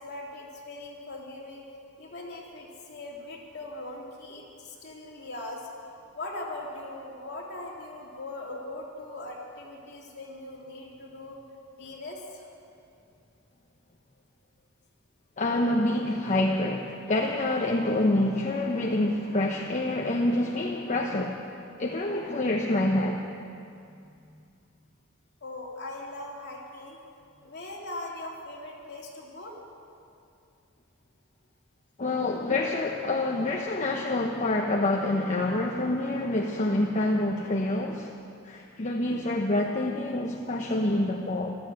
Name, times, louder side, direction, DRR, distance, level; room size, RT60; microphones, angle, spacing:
voice 1, 0.0-1.6 2.0-5.6 6.1-11.4 11.7-12.5 23.8-24.4 25.4-27.0 27.4-29.5, left 2 dB, 55° left, -3 dB, 3.0 m, -40 dB
voice 2, 15.4-21.4 21.8-23.2 32.0-38.1 38.4-41.5, left 1 dB, 35° left, 0 dB, 1.0 m, -27 dB
15.0 x 12.5 x 7.8 m, 2.4 s
head